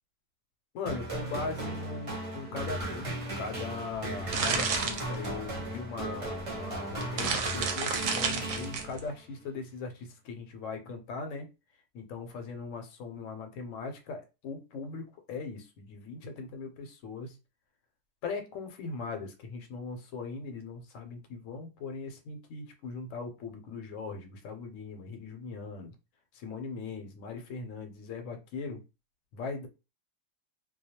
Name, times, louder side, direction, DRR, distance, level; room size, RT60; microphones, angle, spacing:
voice 1, 0.7-11.5 11.9-17.4 18.2-25.9 26.3-28.8 29.3-29.7, left 4 dB, 75° left, 6 dB, 0.9 m, -39 dB
sound 1, 0.9-9.2, right 1 dB, 35° right, 0.5 m, -37 dB
sound 2, 3.9-5.7 6.4-6.5 6.9-9.0, right 5 dB, 70° right, 0.8 m, -31 dB
2.2 x 2.2 x 2.8 m, 0.28 s
omnidirectional pair, 1.4 m